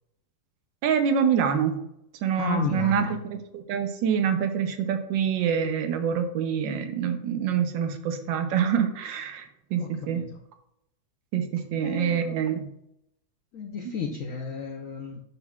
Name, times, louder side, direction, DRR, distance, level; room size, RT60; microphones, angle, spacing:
voice 1, 0.8-1.8 2.2-10.2 11.3-12.7, right 8 dB, 75° right, 8 dB, 1.3 m, -26 dB
voice 2, 2.4-3.1 9.8-10.3 11.8-12.4 13.5-15.2, left 6 dB, 70° left, 1 dB, 0.8 m, -32 dB
11.0 x 3.8 x 2.3 m, 0.79 s
omnidirectional pair, 2.1 m